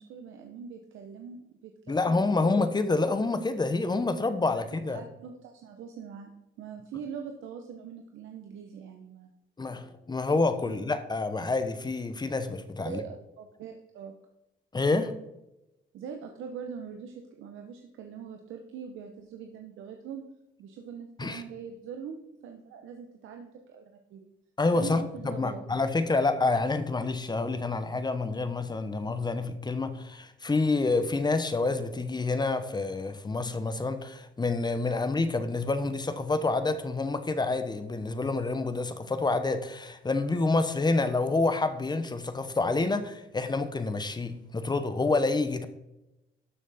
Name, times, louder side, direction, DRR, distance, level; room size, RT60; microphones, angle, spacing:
voice 1, 0.0-2.5 4.5-6.3 6.6-9.3 10.6-10.8 12.8-14.1 15.9-20.2 20.6-24.3 24.7-25.6, right 7 dB, 80° right, 0.9 m, -42 dB
voice 2, 1.9-5.0 9.6-13.0 14.7-15.1 21.2-21.4 24.6-45.7, left 3 dB, 20° left, 1.0 m, -28 dB
12.5 x 6.1 x 4.2 m
cardioid pair, 90°, 20 cm